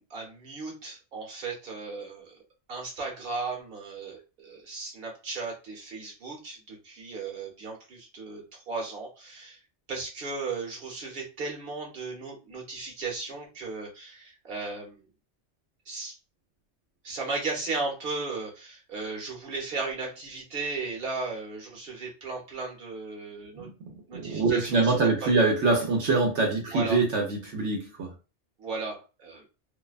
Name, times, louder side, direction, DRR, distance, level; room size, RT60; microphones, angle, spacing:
voice 1, 0.0-2.4 2.7-9.6 9.9-15.1 15.9-16.1 17.0-23.7 24.1-24.9 25.2-25.3 26.7-27.0 28.6-29.4, right 3 dB, 55° right, 0 dB, 1.1 m, -36 dB
voice 2, 24.1-28.1, right 3 dB, 75° right, -1 dB, 1.0 m, -24 dB
2.7 x 2.1 x 2.4 m, 0.31 s
omnidirectional pair, 1.2 m